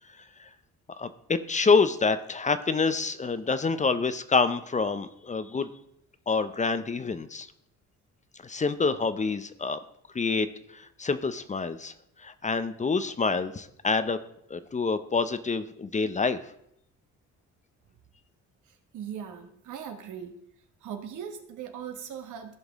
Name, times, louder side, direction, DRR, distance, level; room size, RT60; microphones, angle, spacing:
voice 1, 1.0-5.7 6.3-7.5 8.4-9.8 10.1-10.5 10.7-11.9 12.2-14.2 14.5-16.4, left 4 dB, 25° left, 12 dB, 0.5 m, -27 dB
voice 2, 18.9-20.3 20.8-22.5, right 8 dB, 80° right, 6 dB, 1.3 m, -39 dB
15.0 x 5.3 x 3.5 m, 0.75 s
cardioid pair, 90°, 30 cm